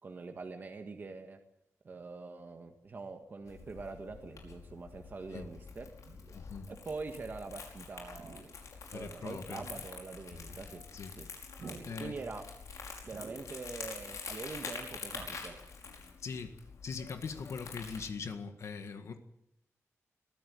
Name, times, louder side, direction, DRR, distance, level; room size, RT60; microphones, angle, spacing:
voice 1, 0.0-1.4 1.8-5.9 6.7-8.4 8.9-10.8 11.2-11.3 12.0-12.4 13.0-15.6, right 4 dB, 35° right, 5 dB, 1.7 m, -44 dB
sound 1, 3.0-7.7 8.0-9.3 9.6-9.7 10.0-15.7, right 4 dB, 55° right, 2.6 m, -55 dB
Crumpling crinkling, 3.5-18.1, left 5 dB, 85° left, 5.3 m, -47 dB
voice 2, 6.3-6.7 8.9-9.6 10.9-11.1 11.8-12.2 16.2-16.6 16.8-19.2, left 5 dB, 60° left, 7 dB, 1.8 m, -41 dB
21.5 x 15.5 x 8.8 m, 0.82 s
wide cardioid pair, 175°, 5 cm